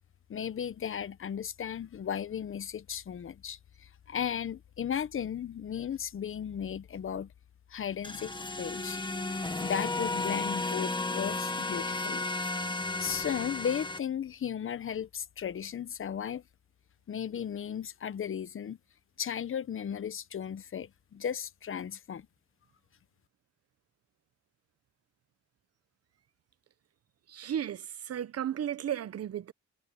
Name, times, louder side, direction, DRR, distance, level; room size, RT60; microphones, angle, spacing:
voice 1, 0.3-7.3 7.7-9.0 9.6-12.2 13.0-16.4 17.1-18.8 19.2-22.3, left 8 dB, 45° left, 1.1 m, -35 dB
sound 1, 8.0-14.0, left 2 dB, 15° left, 1.9 m, -33 dB
voice 2, 27.3-29.5, right 10 dB, 55° right, 1.0 m, -34 dB
cardioid pair, 90°, 30 cm